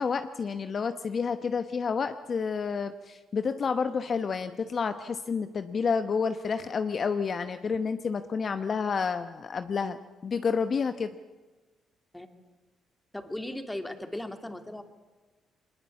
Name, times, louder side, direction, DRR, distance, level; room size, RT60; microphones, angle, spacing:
voice 1, 0.0-11.2, left 5 dB, 45° left, 9 dB, 1.0 m, -30 dB
voice 2, 13.1-14.8, left 1 dB, 10° left, 7 dB, 2.5 m, -37 dB
22.5 x 20.5 x 8.4 m, 1.2 s
cardioid pair, 90°, 0 cm